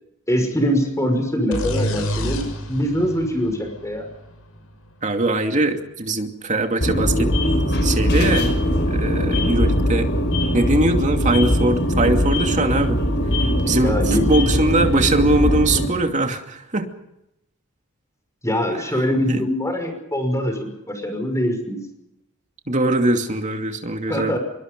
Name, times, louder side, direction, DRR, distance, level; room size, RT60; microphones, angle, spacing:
voice 1, 0.3-4.1 13.8-14.3 18.4-21.8 24.1-24.4, equal, 15° left, 5 dB, 5.7 m, -23 dB
sound 1, 1.5-5.2, equal, 75° left, 6.6 m, -29 dB
voice 2, 5.0-7.3 7.8-8.5 8.9-10.1 10.5-13.0 13.7-16.9 19.3-19.4 22.7-24.4, right 2 dB, 35° right, 4 dB, 2.6 m, -21 dB
sound 2, 6.8-15.9, equal, 55° left, 5.8 m, -20 dB
25.5 x 23.5 x 5.3 m, 0.85 s
head